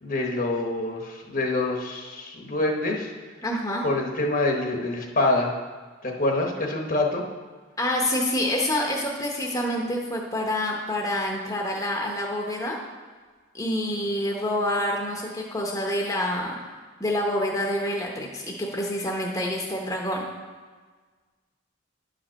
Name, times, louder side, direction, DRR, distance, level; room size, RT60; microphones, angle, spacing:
voice 1, 0.0-3.1 3.8-5.5 6.0-7.2, left 2 dB, 40° left, 1 dB, 1.0 m, -26 dB
voice 2, 3.4-3.8 7.8-12.8 13.5-16.6 17.0-20.3, left 1 dB, 15° left, -1 dB, 0.9 m, -27 dB
10.5 x 5.1 x 6.3 m, 1.5 s
head